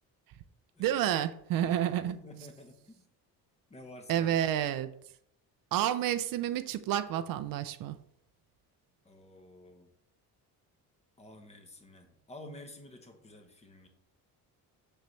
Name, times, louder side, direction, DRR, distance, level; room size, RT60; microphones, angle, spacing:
voice 1, 0.8-2.1 4.1-4.9 5.7-8.0, right 11 dB, 65° right, 0.5 m, -29 dB
voice 2, 1.6-3.1 3.7-4.4 9.0-9.9 11.2-13.9, left 1 dB, 20° left, 0.8 m, -51 dB
6.7 x 6.5 x 3.1 m
cardioid pair, 160°, 37 cm